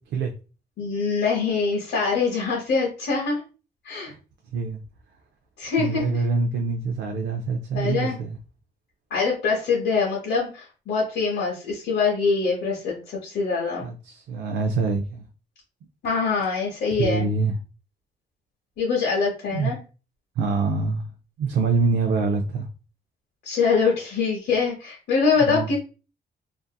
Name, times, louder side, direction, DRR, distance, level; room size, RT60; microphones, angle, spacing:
voice 1, 0.8-3.4 3.8-4.1 5.6-6.2 7.7-8.2 9.1-13.8 16.0-17.2 18.8-19.8 23.4-25.8, left 5 dB, 80° left, -3 dB, 0.7 m, -24 dB
voice 2, 5.8-8.4 13.8-15.3 17.0-17.5 19.5-19.7 20.4-21.0 21.4-22.7 25.5-25.7, right 4 dB, 80° right, 3 dB, 0.4 m, -25 dB
2.6 x 2.4 x 2.2 m, 0.34 s
cardioid pair, 95°, 18 cm